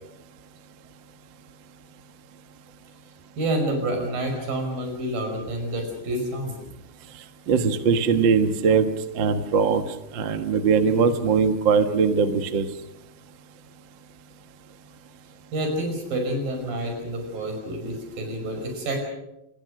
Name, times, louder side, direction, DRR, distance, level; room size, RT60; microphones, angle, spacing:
voice 1, 3.4-6.6 15.5-19.0, right 1 dB, 70° right, 4 dB, 7.2 m, -28 dB
voice 2, 7.5-8.9 9.1-9.8 10.1-12.6, right 5 dB, 55° right, 8 dB, 1.4 m, -20 dB
27.5 x 20.5 x 6.5 m, 0.87 s
omnidirectional pair, 4.1 m